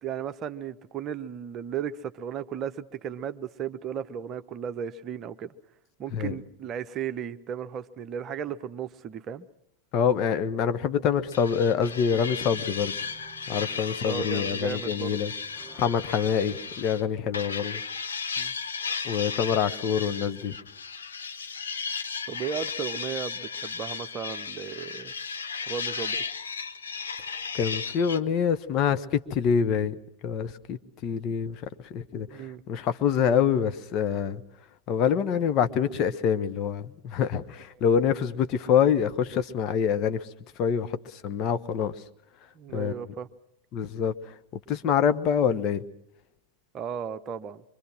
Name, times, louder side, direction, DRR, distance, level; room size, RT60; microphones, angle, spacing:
voice 1, 0.0-5.5 6.0-9.5 14.0-15.1 18.4-18.5 22.3-25.1 25.7-26.2 32.3-32.6 42.5-43.3 46.7-47.6, right 8 dB, 30° right, 11 dB, 1.0 m, -35 dB
voice 2, 9.9-12.9 13.5-15.3 15.7-17.8 19.0-20.6 27.2-34.4 34.9-42.0 42.7-42.9 43.7-44.4 44.7-45.8, left 7 dB, 35° left, 9 dB, 1.3 m, -26 dB
sound 1, 11.3-17.0 17.3-28.2, left 5 dB, 70° left, 1.0 m, -35 dB
sound 2, 12.5-17.9, right 6 dB, 15° right, 7.9 m, -54 dB
25.0 x 24.5 x 6.2 m, 0.74 s
figure-of-eight pair, 90°, 0 cm